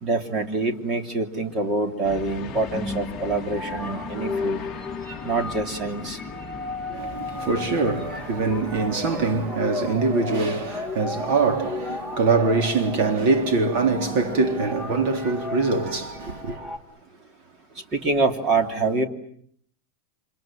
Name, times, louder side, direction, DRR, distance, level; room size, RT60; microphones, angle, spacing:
voice 1, 0.0-4.7 5.2-6.2 17.9-19.0, right 3 dB, 25° right, 3.0 m, -25 dB
sound 1, 2.0-9.5, left 5 dB, 15° left, 2.4 m, -39 dB
sound 2, 2.5-16.8, left 3 dB, 10° right, 1.7 m, -34 dB
voice 2, 6.9-16.6, right 4 dB, 45° right, 3.7 m, -23 dB
29.5 x 26.0 x 7.7 m
supercardioid pair, 165°, 0 cm